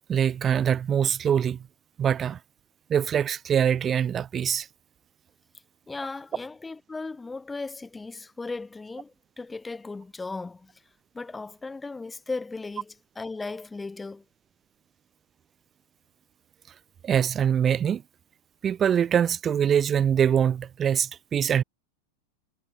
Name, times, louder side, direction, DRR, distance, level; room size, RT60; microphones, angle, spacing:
voice 1, 0.1-1.6 2.0-2.4 2.9-4.7 17.0-18.0 18.6-21.6, right 8 dB, 25° right, 0.5 m, -23 dB
voice 2, 5.9-10.7 11.1-14.2, left 3 dB, 10° left, 3.7 m, -36 dB
figure-of-eight pair, 90°, 0 cm